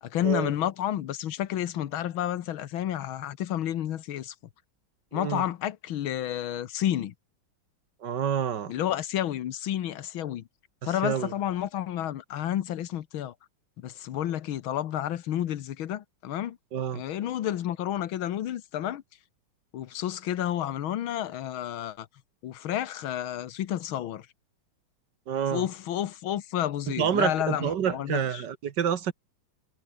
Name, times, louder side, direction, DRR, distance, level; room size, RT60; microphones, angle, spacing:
voice 1, 0.0-4.4 5.1-7.1 8.7-10.4 10.9-13.3 13.8-16.6 16.9-19.0 19.7-22.1 22.4-24.3 25.5-28.4, left 11 dB, 85° left, 1.9 m, -30 dB
voice 2, 5.1-5.5 8.0-8.7 10.8-11.3 16.7-17.0 25.3-25.7 27.0-29.1, right 8 dB, 60° right, 1.8 m, -28 dB
omnidirectional pair, 2.2 m